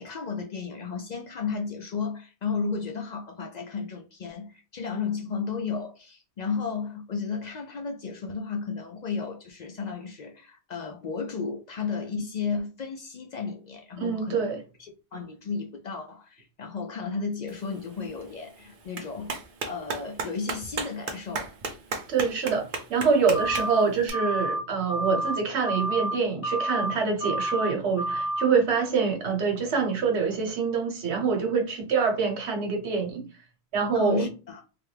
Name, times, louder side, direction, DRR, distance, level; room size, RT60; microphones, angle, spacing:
voice 1, 0.0-19.3 19.6-21.5 33.9-34.6, left 5 dB, 55° left, 0.5 m, -33 dB
voice 2, 14.0-14.6 22.1-33.3 33.7-34.3, right 5 dB, 80° right, 1.1 m, -25 dB
Clapping, 17.5-24.1, right 4 dB, 55° right, 0.8 m, -37 dB
sound 1, 23.3-23.8 24.1-24.6 24.9-25.4 25.6-26.1 26.4-26.9 27.2-27.7 28.0-28.5, right 1 dB, 80° left, 1.1 m, -29 dB
3.4 x 2.2 x 3.2 m
omnidirectional pair, 1.1 m